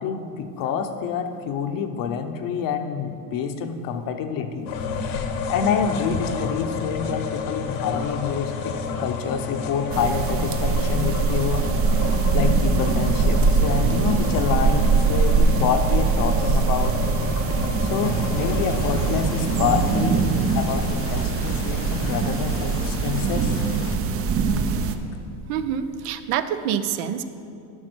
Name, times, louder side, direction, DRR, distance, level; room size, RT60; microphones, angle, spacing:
voice 1, 0.0-4.7 5.2-11.7 12.3-16.9 17.8-20.2 20.5-23.5, left 7 dB, 50° left, 6 dB, 0.8 m, -27 dB
sound 1, 4.7-22.9, left 5 dB, 70° left, 1.2 m, -31 dB
sound 2, 9.9-25.0, right 5 dB, 30° right, 0.5 m, -22 dB
sound 3, 18.0-24.0, left 7 dB, 30° left, 0.4 m, -36 dB
voice 2, 25.5-27.2, right 9 dB, 80° right, 11 dB, 0.7 m, -26 dB
11.0 x 5.8 x 6.1 m, 2.6 s
cardioid pair, 135°, 44 cm